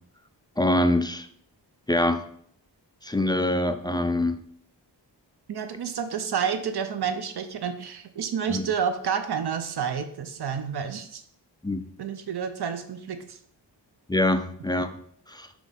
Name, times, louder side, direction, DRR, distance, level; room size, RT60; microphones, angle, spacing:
voice 1, 0.6-1.3 1.9-2.3 3.0-4.4 8.5-8.6 11.6-11.9 14.1-15.0 15.3-15.5, left 1 dB, 10° left, 8 dB, 0.3 m, -24 dB
voice 2, 5.5-11.2 12.0-13.4, right 7 dB, 65° right, 8 dB, 0.7 m, -29 dB
6.2 x 3.1 x 5.2 m, 0.63 s
wide cardioid pair, 120°, 43 cm